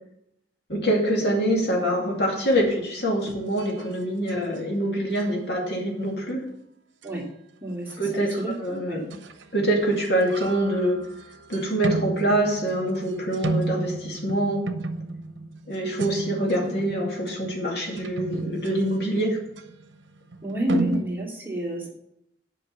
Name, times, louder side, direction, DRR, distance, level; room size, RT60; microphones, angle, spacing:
voice 1, 0.7-6.4 8.0-9.0 9.5-11.0 11.5-14.7 15.7-19.4, right 1 dB, 60° left, -1 dB, 2.5 m, -25 dB
sound 1, 2.5-2.8 3.2-4.7 5.2-5.4 7.0-7.1 7.9-8.6 9.1-9.5 9.8-21.0, right 2 dB, 85° right, 0.8 m, -34 dB
voice 2, 7.6-8.1 8.4-9.0 20.4-21.9, equal, 10° right, -4 dB, 2.5 m, -29 dB
8.8 x 5.6 x 6.9 m, 0.77 s
head